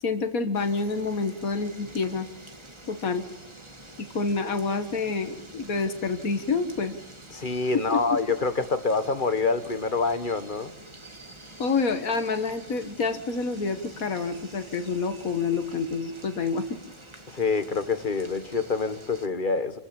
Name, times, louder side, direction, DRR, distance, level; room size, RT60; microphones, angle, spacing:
voice 1, 0.0-2.3 2.9-3.2 4.0-7.0 7.7-8.2 11.6-16.8, left 4 dB, 80° left, 9 dB, 2.1 m, -28 dB
sound 1, 0.5-19.3, right 1 dB, 20° right, 2.2 m, -47 dB
voice 2, 7.3-10.7 17.3-19.8, left 4 dB, 35° left, 10 dB, 1.6 m, -26 dB
27.5 x 16.0 x 8.9 m, 0.89 s
omnidirectional pair, 1.4 m